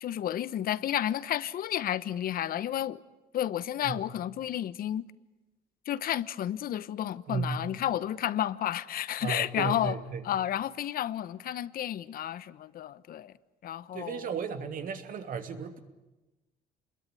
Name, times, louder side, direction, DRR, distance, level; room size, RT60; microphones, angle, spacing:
voice 1, 0.0-3.0 3.3-5.1 5.8-10.0 10.2-13.4 13.6-14.4, left 11 dB, 60° left, 1.1 m, -31 dB
voice 2, 7.3-7.7 9.2-10.2 13.9-15.8, right 6 dB, 55° right, 2.8 m, -34 dB
28.5 x 21.5 x 9.6 m
cardioid pair, 110°, 17 cm